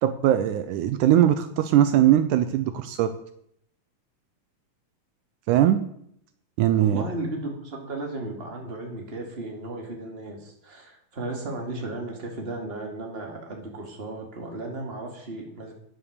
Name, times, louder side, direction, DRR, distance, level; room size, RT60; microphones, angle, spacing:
voice 1, 0.0-3.1 5.5-5.8 6.6-7.0, right 11 dB, 90° right, 10 dB, 1.8 m, -20 dB
voice 2, 6.8-15.7, right 2 dB, 20° right, 1 dB, 1.9 m, -35 dB
9.6 x 8.7 x 6.7 m, 0.69 s
omnidirectional pair, 4.2 m